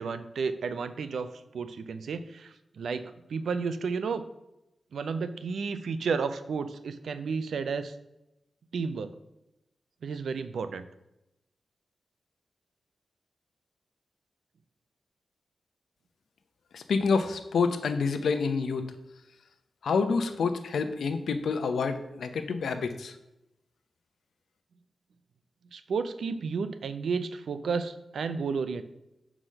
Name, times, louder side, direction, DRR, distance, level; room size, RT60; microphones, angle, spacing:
voice 1, 0.0-4.2 4.9-7.9 8.7-9.1 10.0-10.9 25.7-28.8, right 5 dB, 75° right, 11 dB, 0.5 m, -32 dB
voice 2, 16.7-18.9 19.8-23.2, left 5 dB, 85° left, 8 dB, 0.7 m, -28 dB
5.7 x 4.9 x 6.4 m, 0.91 s
wide cardioid pair, 175°, 0 cm